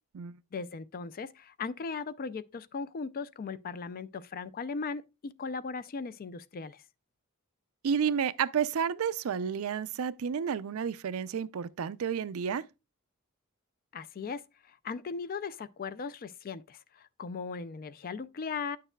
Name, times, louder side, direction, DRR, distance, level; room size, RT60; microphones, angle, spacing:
voice 1, 0.5-6.8 13.9-14.4 14.7-18.8, left 5 dB, 40° left, 0.4 m, -38 dB
voice 2, 7.8-12.6, right 7 dB, 70° right, 0.4 m, -31 dB
9.8 x 6.6 x 2.2 m
head